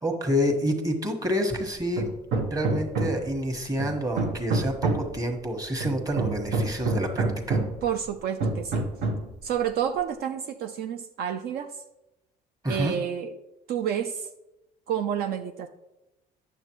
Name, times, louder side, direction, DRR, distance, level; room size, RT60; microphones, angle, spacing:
voice 1, 0.0-2.1 2.5-7.6 12.6-12.9, equal, 20° right, 3 dB, 1.4 m, -28 dB
Hammer, 2.0-3.4 3.8-5.2 5.8-7.8 8.4-9.3, right 3 dB, 85° right, 1.1 m, -28 dB
voice 2, 7.8-8.9 9.4-11.8 12.7-13.3 13.7-14.3 14.9-15.7, right 9 dB, 70° right, 6 dB, 0.5 m, -29 dB
9.1 x 6.8 x 3.1 m, 0.95 s
cardioid pair, 110°, 17 cm